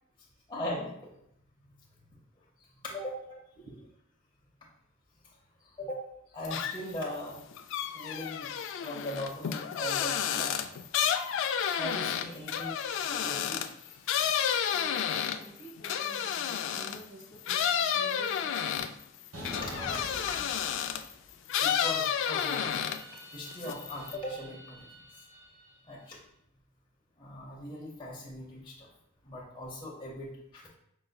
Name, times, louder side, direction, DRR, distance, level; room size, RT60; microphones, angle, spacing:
voice 1, 0.5-0.9 2.9-3.2 5.8-6.0 6.3-7.4 7.9-8.5 8.8-10.8 11.8-14.8 19.6-20.2 21.6-22.9 23.3-24.9 25.9-26.2 27.2-28.9 29.3-30.3 30.5-30.7, left 1 dB, 25° left, -5 dB, 0.7 m, -39 dB
voice 2, 3.6-3.9 14.5-19.0, right 2 dB, 65° right, 0 dB, 1.2 m, -49 dB
sound 1, 6.4-7.0 7.3-17.0 17.5-21.1 21.5-23.2 23.5-24.1, left 8 dB, 65° left, 0.3 m, -31 dB
sound 2, 19.3-21.3 21.6-25.9, equal, 90° right, 1.2 m, -47 dB
5.4 x 3.9 x 2.3 m, 0.75 s
head